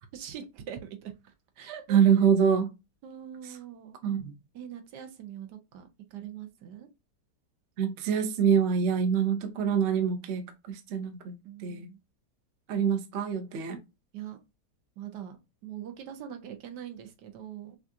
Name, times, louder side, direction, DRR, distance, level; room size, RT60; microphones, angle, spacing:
voice 1, 0.1-1.1 1.6-2.0 3.0-4.0 4.5-6.9 11.4-12.0 14.1-14.4 15.0-15.4 15.6-17.8, right 9 dB, 75° right, 1.3 m, -42 dB
voice 2, 1.9-2.7 4.0-4.4 7.8-11.4 11.6-11.9 12.7-13.8, right 7 dB, 55° right, 0.8 m, -25 dB
5.8 x 2.4 x 2.7 m
omnidirectional pair, 1.9 m